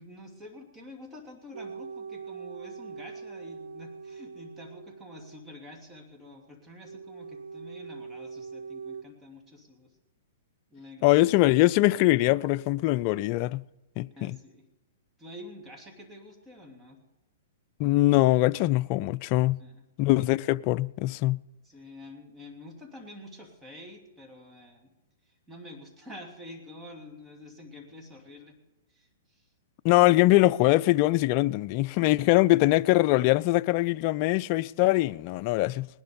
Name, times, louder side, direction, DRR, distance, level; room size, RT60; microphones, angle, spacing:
voice 1, 0.0-9.9 10.7-11.2 14.1-14.6 15.2-17.0 19.6-19.8 21.6-24.9 25.3-28.6 28.9-29.4, left 1 dB, 10° right, 3.0 m, -47 dB
sound 1, 1.5-5.5 6.8-9.0, right 5 dB, 75° right, 1.1 m, -42 dB
voice 2, 11.0-13.6 14.0-14.4 17.8-19.6 20.0-21.4 29.8-35.9, left 18 dB, 40° left, 0.4 m, -22 dB
19.5 x 11.0 x 5.3 m
hypercardioid pair, 130°, 0 cm